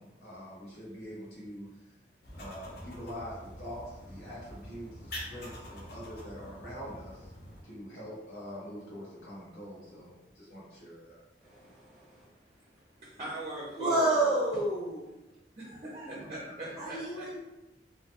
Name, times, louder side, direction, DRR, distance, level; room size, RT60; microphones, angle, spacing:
voice 1, 0.0-1.7 2.3-7.3 7.6-11.2, equal, 90° left, -6 dB, 1.0 m, -44 dB
sound 1, 2.2-7.6, left 1 dB, 65° left, 0.6 m, -46 dB
voice 2, 11.4-12.2 13.8-15.1 16.8-17.4, right 2 dB, ahead, -7 dB, 0.8 m, -30 dB
voice 3, 12.6-14.4 15.6-17.3, right 1 dB, 35° right, -4 dB, 0.5 m, -40 dB
2.4 x 2.2 x 2.7 m, 0.99 s
head